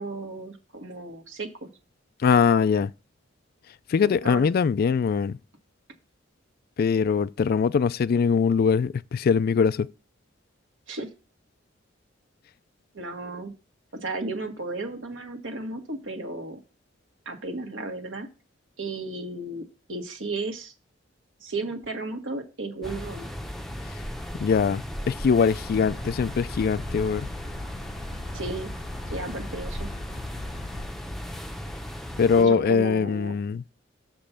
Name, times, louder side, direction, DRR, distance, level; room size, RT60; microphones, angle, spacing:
voice 1, 0.0-1.7 4.0-4.5 10.9-11.1 12.9-13.5 14.0-16.6 17.2-18.3 18.8-19.6 19.9-20.7 21.4-23.3 28.3-28.7 29.1-29.9 32.4-33.3, right 2 dB, 75° right, 1.5 m, -34 dB
voice 2, 2.2-2.9 3.9-5.4 6.8-9.9 24.3-27.3 32.2-33.6, left 6 dB, 50° left, 0.3 m, -22 dB
sound 1, 22.8-32.4, equal, ahead, 0.6 m, -36 dB
sound 2, 25.6-30.9, left 2 dB, 85° left, 1.1 m, -40 dB
7.1 x 5.2 x 5.7 m
head